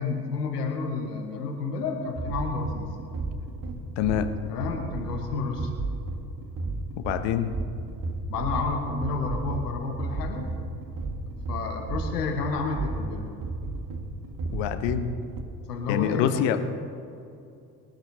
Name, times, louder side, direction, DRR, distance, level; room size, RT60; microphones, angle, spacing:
voice 1, 0.0-2.9 4.5-5.7 8.3-10.5 11.5-13.3 15.7-16.6, left 4 dB, 80° left, 2 dB, 1.5 m, -30 dB
sound 1, 1.8-15.4, right 2 dB, 45° right, 1.6 m, -33 dB
voice 2, 4.0-4.3 7.0-7.5 14.5-15.1 15.9-16.6, left 10 dB, 60° left, 8 dB, 1.2 m, -25 dB
24.0 x 12.0 x 2.9 m, 2.6 s
figure-of-eight pair, 50°, 47 cm